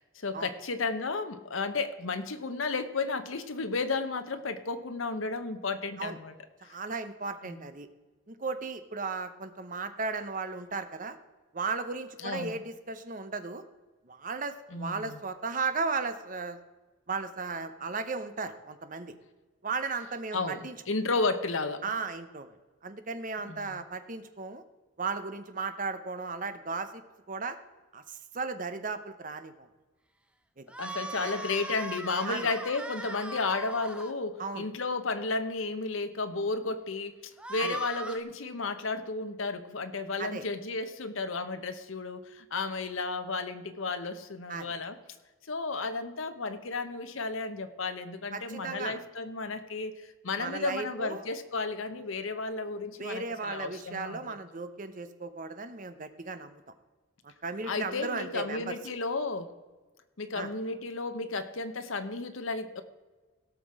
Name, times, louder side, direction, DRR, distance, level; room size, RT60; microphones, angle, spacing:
voice 1, 0.0-6.3 6.6-6.8 7.4-7.7 12.2-12.6 14.7-15.2 20.3-21.8 23.5-23.8 30.8-45.0 45.5-54.3 57.6-59.5 60.2-62.8, left 3 dB, 70° left, 9 dB, 0.9 m, -33 dB
voice 2, 6.6-7.9 8.3-11.2 11.5-13.6 14.1-16.6 17.1-19.1 19.6-20.8 21.8-22.5 22.8-24.6 25.0-27.0 27.3-27.6 27.9-29.7 30.6-30.7 31.2-31.3 32.3-32.5 34.4-34.7 37.6-37.8 40.2-40.4 44.5-44.7 48.3-49.0 50.4-51.2 53.0-56.6 57.4-58.8 60.3-60.5, right 4 dB, 40° right, 9 dB, 0.8 m, -35 dB
sound 1, 30.7-34.1 37.4-38.2, right 2 dB, 5° right, 0.6 m, -39 dB
17.0 x 6.0 x 4.8 m, 1.3 s
head